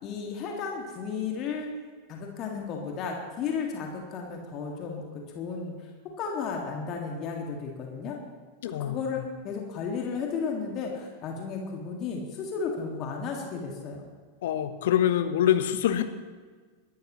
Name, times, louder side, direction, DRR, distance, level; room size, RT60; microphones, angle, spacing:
voice 1, 0.0-1.7 2.1-8.2 8.8-14.0, left 5 dB, 35° left, 1 dB, 2.0 m, -34 dB
voice 2, 8.6-9.0 14.4-16.0, left 10 dB, 55° left, 10 dB, 1.1 m, -25 dB
22.0 x 12.5 x 3.1 m, 1.5 s
figure-of-eight pair, 90°, 0 cm